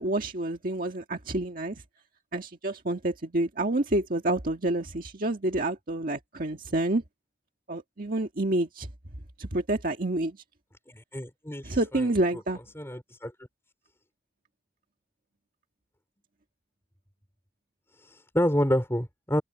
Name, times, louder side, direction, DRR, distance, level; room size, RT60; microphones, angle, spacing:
voice 1, 0.0-1.7 2.3-7.0 7.7-8.9 9.4-10.4 11.6-12.6, right 1 dB, 55° right, 1.7 m, -28 dB
voice 2, 10.9-12.1 12.7-13.3 18.0-19.4, equal, 15° left, 4.3 m, -28 dB
open air
head